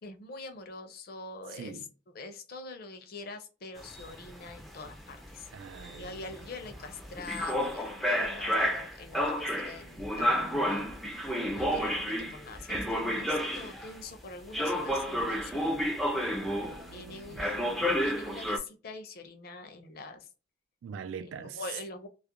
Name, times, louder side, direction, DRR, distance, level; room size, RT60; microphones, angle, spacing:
voice 1, 0.0-1.8 2.1-5.5 5.9-15.8 16.9-20.3 21.2-22.1, left 3 dB, 50° left, 0.5 m, -44 dB
voice 2, 1.5-1.9 5.5-6.2 16.4-17.5 20.8-21.6, right 6 dB, 85° right, 0.3 m, -43 dB
sound 1, 3.8-14.0 14.5-17.0 17.4-18.6, equal, ahead, 0.3 m, -31 dB
2.4 x 2.0 x 2.8 m
head